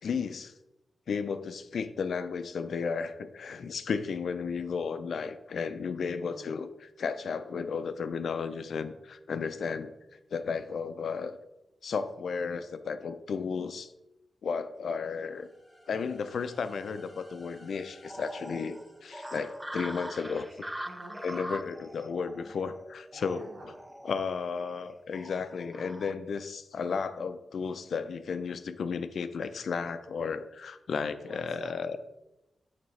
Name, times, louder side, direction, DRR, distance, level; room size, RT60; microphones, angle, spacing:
voice 1, 0.0-0.5 1.1-6.7 7.0-9.9 10.3-11.4 11.8-13.9 14.4-15.5 15.9-20.5 21.2-23.4 24.0-32.0, left 5 dB, 65° left, 11 dB, 0.4 m, -33 dB
voice 2, 6.1-6.6 20.8-21.6 22.4-22.7 23.1-23.9 31.2-32.0, right 2 dB, 50° right, -2 dB, 1.7 m, -50 dB
sound 1, 15.3-20.1, left 1 dB, 10° left, 1.1 m, -58 dB
sound 2, 18.0-26.1, right 1 dB, 10° right, 0.3 m, -43 dB
8.6 x 3.6 x 3.2 m, 0.95 s
wide cardioid pair, 155°, 0 cm